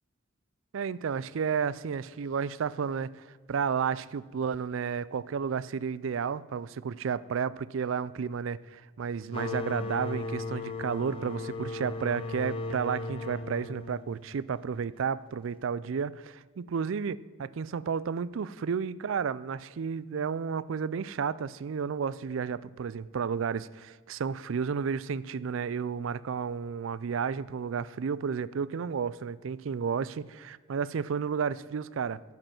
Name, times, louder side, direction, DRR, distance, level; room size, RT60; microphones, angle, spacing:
voice 1, 0.7-16.4 16.7-32.2, right 6 dB, 70° right, 0.4 m, -32 dB
sound 1, 9.3-14.7, left 2 dB, 25° left, 1.0 m, -36 dB
10.5 x 7.8 x 7.6 m
head